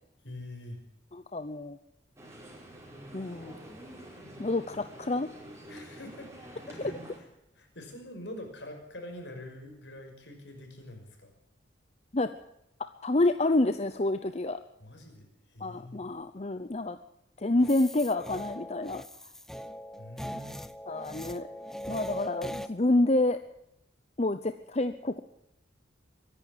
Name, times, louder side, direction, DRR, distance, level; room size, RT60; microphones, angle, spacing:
voice 1, 0.2-0.8 5.7-7.0 7.6-11.3 14.8-16.0 20.0-20.6, left 1 dB, 65° left, 4 dB, 5.8 m, -45 dB
voice 2, 1.1-1.8 3.1-3.6 4.4-5.3 6.8-6.9 12.1-12.3 13.0-14.6 15.6-17.0 17.4-19.0 20.9-21.5 21.9-23.4 24.2-25.2, left 2 dB, 35° left, 10 dB, 0.7 m, -28 dB
sound 1, 2.2-7.2, right 1 dB, 15° right, 4.9 m, -47 dB
sound 2, 17.6-22.7, equal, ahead, 0.7 m, -40 dB
24.0 x 11.0 x 9.9 m, 0.80 s
head